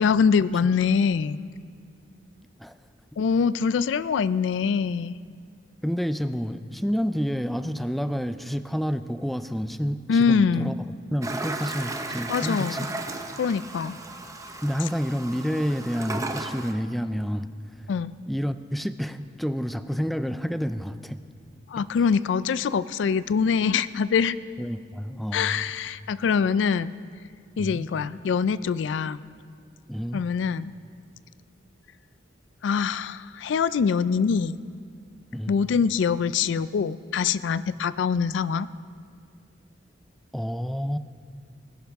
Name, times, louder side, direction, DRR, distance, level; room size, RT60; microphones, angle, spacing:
voice 1, 0.0-1.4 3.2-5.2 10.1-10.7 12.3-12.8 13.4-14.0 17.9-18.2 21.7-24.4 25.3-26.9 27.6-29.2 30.1-30.7 32.6-34.6 35.5-38.7, left 6 dB, 90° left, 16 dB, 0.3 m, -24 dB
voice 2, 5.8-10.7 11.1-12.9 14.6-17.5 18.3-21.2 24.6-25.7 27.6-27.8 29.9-30.2 35.3-35.5 40.3-41.0, equal, ahead, 11 dB, 0.3 m, -29 dB
Toilet flush, 11.2-16.7, right 2 dB, 20° right, 0.7 m, -35 dB
20.0 x 11.0 x 3.5 m, 2.1 s
head